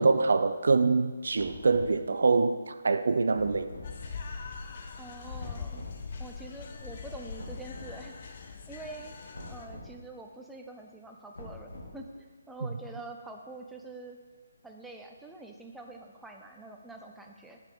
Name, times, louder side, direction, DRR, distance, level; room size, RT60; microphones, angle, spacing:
voice 1, 0.0-3.7, right 4 dB, 60° right, 0.3 m, -25 dB
sound 1, 1.3-2.0 3.3-3.9 5.4-6.0 7.4-7.9 9.3-9.9 11.3-12.1, left 1 dB, 60° left, 2.1 m, -44 dB
sound 2, 3.8-9.7, left 5 dB, 40° left, 0.6 m, -42 dB
voice 2, 5.0-5.8 6.2-8.1 8.7-9.1 9.5-14.2 14.6-17.6, right 2 dB, 5° right, 0.5 m, -45 dB
7.4 x 5.2 x 5.2 m
figure-of-eight pair, 145°, 0 cm